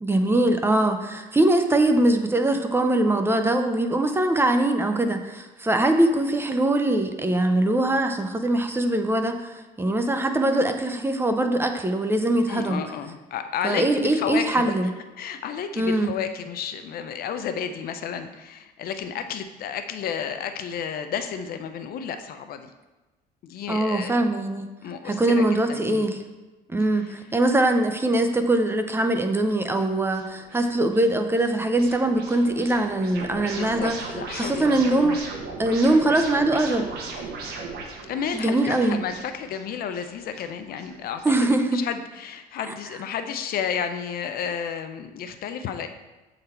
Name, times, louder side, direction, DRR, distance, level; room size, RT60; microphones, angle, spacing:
voice 1, 0.0-12.8 13.6-14.9 15.8-16.1 23.7-24.7 25.0-26.2 26.7-33.9 34.3-35.2 35.6-36.9 38.3-39.0 41.2-41.8, right 1 dB, 15° right, 6 dB, 0.6 m, -22 dB
voice 2, 12.5-14.6 15.2-22.7 23.4-24.2 24.8-25.4 25.7-26.1 27.0-27.1 33.5-35.2 38.1-45.9, left 7 dB, 60° left, 8 dB, 0.6 m, -32 dB
sound 1, 29.8-41.2, right 3 dB, 70° right, 1.2 m, -38 dB
7.9 x 4.0 x 4.3 m, 1.1 s
cardioid pair, 110°, 17 cm